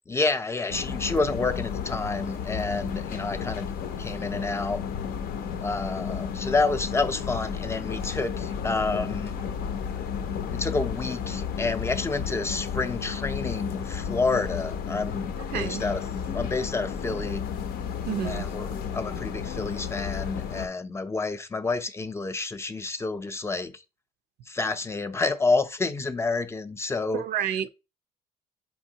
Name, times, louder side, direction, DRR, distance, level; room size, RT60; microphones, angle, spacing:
voice 1, 0.1-3.7 4.0-4.8 5.6-9.3 10.5-16.0 16.3-17.4 18.2-23.8 24.5-27.2, left 3 dB, 15° left, 0.4 m, -29 dB
sound 1, 0.7-20.7, left 7 dB, 65° left, 0.6 m, -32 dB
voice 2, 15.4-15.8 18.1-18.5 27.1-27.7, right 9 dB, 70° right, 0.4 m, -30 dB
4.4 x 3.0 x 2.8 m
cardioid pair, 110°, 17 cm